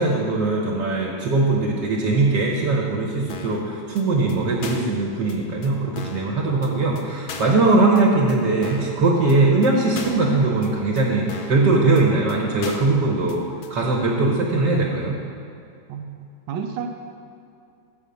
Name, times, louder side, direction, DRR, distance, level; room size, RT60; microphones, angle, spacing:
voice 1, 0.0-13.4 13.7-15.2, right 3 dB, 70° right, -1 dB, 1.6 m, -20 dB
sound 1, 3.3-3.6 4.0-4.1 4.3-4.4 4.6-5.0 5.3-5.4 5.6-5.7 6.0-6.3 6.6-6.7 7.0-7.1 7.3-7.6 8.0-8.1 8.3-8.4 8.6-8.9 9.3-9.4 9.6-9.7 10.0-10.3 10.6-10.7 11.0-11.1 11.3-11.6 12.0-12.1 12.3-12.4 12.6-13.0 13.3-13.4 13.6-13.7, left 5 dB, 65° left, 1.2 m, -36 dB
voice 2, 15.9-16.9, right 7 dB, 85° right, 4 dB, 1.3 m, -31 dB
8.0 x 5.1 x 6.9 m, 2.5 s
omnidirectional pair, 2.0 m